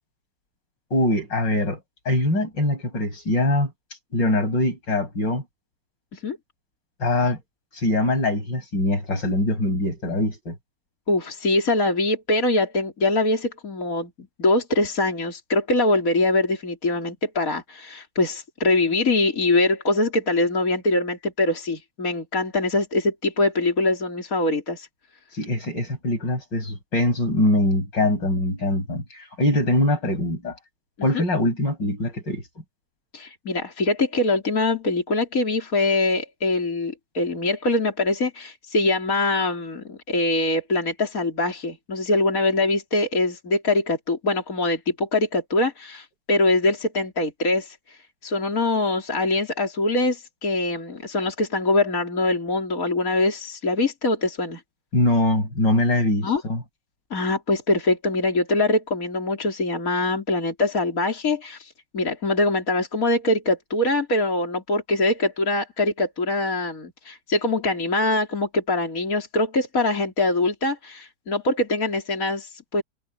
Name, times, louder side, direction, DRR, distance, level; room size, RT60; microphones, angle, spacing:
voice 1, 0.9-1.8 2.1-3.7 4.1-5.4 7.0-7.4 7.7-10.6 25.3-30.6 31.0-32.4 54.9-56.6, left 1 dB, 85° left, 8.0 m, -23 dB
voice 2, 11.1-24.9 31.0-31.2 33.1-47.8 48.2-54.6 56.2-56.4 57.1-72.8, left 2 dB, 50° left, 3.9 m, -23 dB
omnidirectional pair, 1.9 m